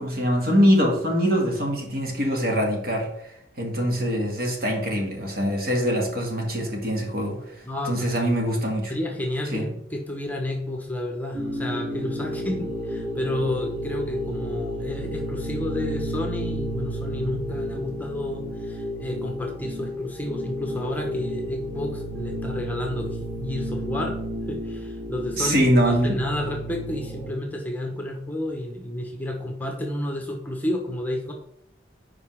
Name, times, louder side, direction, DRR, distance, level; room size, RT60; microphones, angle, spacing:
voice 1, 0.0-3.1 3.6-8.9 9.5-9.7 25.4-26.2, equal, 50° right, 1 dB, 1.8 m, -23 dB
voice 2, 7.6-8.3 8.9-24.2 24.5-31.3, left 1 dB, 10° left, 1 dB, 0.9 m, -31 dB
sound 1, 11.3-27.3, equal, 10° right, 2.5 m, -32 dB
5.3 x 4.9 x 6.2 m, 0.77 s
head